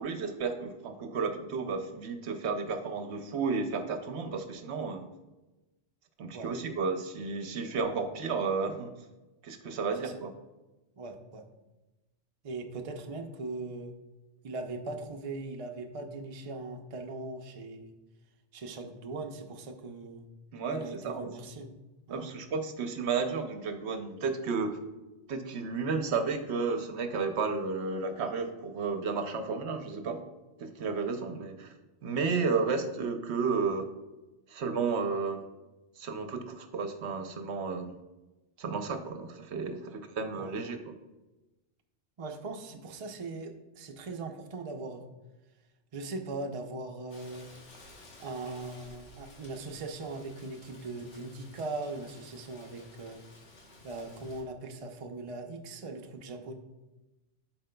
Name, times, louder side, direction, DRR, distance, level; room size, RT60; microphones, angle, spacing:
voice 1, 0.0-5.1 6.2-8.9 9.4-10.3 20.5-21.3 22.1-24.8 25.3-30.2 30.6-31.7 32.0-33.9 34.5-35.4 36.0-38.0 38.6-40.9, right 4 dB, 65° right, 7 dB, 0.9 m, -32 dB
voice 2, 11.0-11.4 12.4-13.9 14.4-17.9 18.5-20.3 20.7-21.7 22.1-22.3 40.4-40.5 42.2-45.0 45.9-47.5 48.2-53.2 53.8-56.5, right 3 dB, 45° right, 4 dB, 0.4 m, -40 dB
Rain, 47.1-54.4, left 2 dB, 60° left, 1.4 m, -54 dB
11.5 x 4.4 x 2.2 m, 1.1 s
omnidirectional pair, 1.3 m